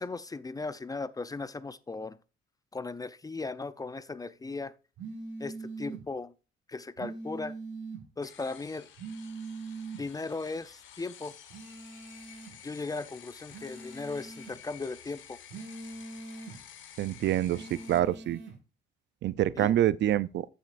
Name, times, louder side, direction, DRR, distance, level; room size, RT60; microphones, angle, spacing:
voice 1, 0.0-2.2 2.7-4.7 5.4-6.3 6.7-7.6 8.2-8.9 10.0-11.4 12.6-15.4 19.5-19.8, left 3 dB, 20° left, 0.4 m, -37 dB
sound 1, 5.0-6.0 7.0-8.0 9.0-10.0 11.5-12.6 13.5-14.6 15.5-16.6 17.5-18.5, right 3 dB, 80° right, 1.8 m, -42 dB
sound 2, 8.2-18.0, left 9 dB, 80° left, 1.2 m, -52 dB
voice 2, 17.0-18.4 19.2-20.5, right 12 dB, 65° right, 0.4 m, -26 dB
14.0 x 6.4 x 2.5 m
cardioid pair, 90°, 20 cm